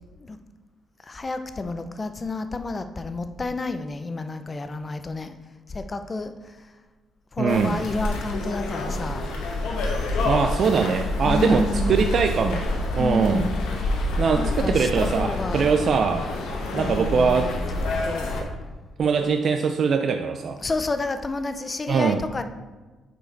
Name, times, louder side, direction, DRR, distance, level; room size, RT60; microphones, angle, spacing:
voice 1, 1.0-5.3 5.7-6.7 7.3-9.4 11.2-12.1 13.0-13.7 14.3-15.7 16.7-17.6 18.0-18.4 18.7-18.8 20.6-22.4, left 2 dB, 30° left, 9 dB, 0.5 m, -30 dB
voice 2, 7.4-7.8 10.2-12.7 13.0-13.5 14.2-16.3 16.7-17.6 19.0-20.6 21.9-22.2, right 5 dB, 55° right, 5 dB, 0.4 m, -22 dB
sound 1, 7.5-18.4, left 2 dB, 85° left, 1.1 m, -27 dB
6.8 x 4.7 x 4.5 m, 1.3 s
cardioid pair, 95°, 0 cm